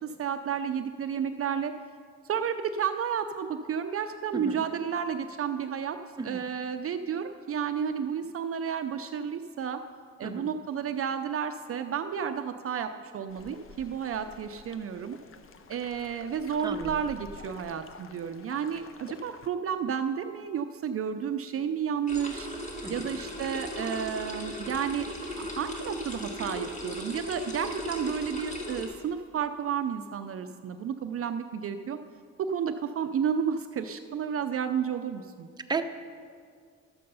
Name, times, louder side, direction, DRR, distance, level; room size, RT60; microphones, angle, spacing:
voice 1, 0.0-1.7 2.3-6.0 6.2-9.8 10.2-15.2 15.7-22.5 22.9-25.1 25.4-32.0 32.4-35.5, right 7 dB, 50° right, 7 dB, 0.5 m, -31 dB
voice 2, 4.3-4.6 6.2-6.4 10.2-10.5 16.6-17.0 22.8-23.2 35.7-35.8, right 4 dB, 15° right, 5 dB, 0.7 m, -34 dB
sound 1, 13.3-19.5, left 4 dB, 45° left, 0.7 m, -49 dB
sound 2, 22.1-28.8, left 1 dB, 25° left, 2.0 m, -37 dB
12.0 x 7.7 x 5.4 m, 2.1 s
cardioid pair, 90°, 30 cm